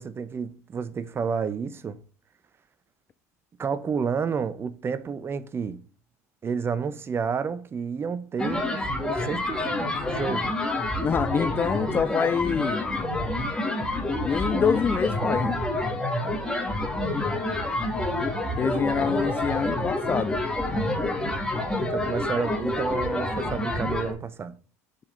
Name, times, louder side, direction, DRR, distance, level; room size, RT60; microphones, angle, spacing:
voice 1, 0.0-2.0 3.6-5.8 6.4-9.7 10.1-10.6 21.7-24.5, right 6 dB, 30° right, 0.8 m, -30 dB
sound 1, 8.4-24.1, left 1 dB, 10° left, 2.1 m, -28 dB
voice 2, 11.0-12.9 14.2-15.6 18.6-20.4, left 7 dB, 30° left, 0.5 m, -26 dB
7.1 x 5.0 x 3.9 m
hypercardioid pair, 80°, 8 cm